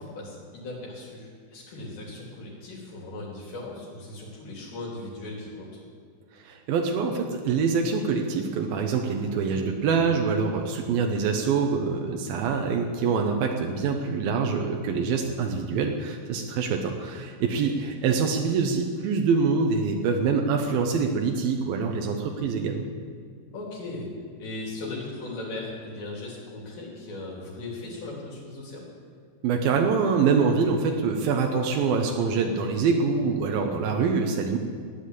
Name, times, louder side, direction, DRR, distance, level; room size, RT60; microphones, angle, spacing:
voice 1, 0.0-5.8 17.4-17.7 23.5-24.1 24.4-28.8, left 2 dB, 65° left, -5 dB, 5.0 m, -38 dB
voice 2, 6.3-22.8 29.4-34.6, right 5 dB, 85° right, 3 dB, 2.1 m, -25 dB
16.0 x 10.0 x 8.1 m, 2.1 s
omnidirectional pair, 5.6 m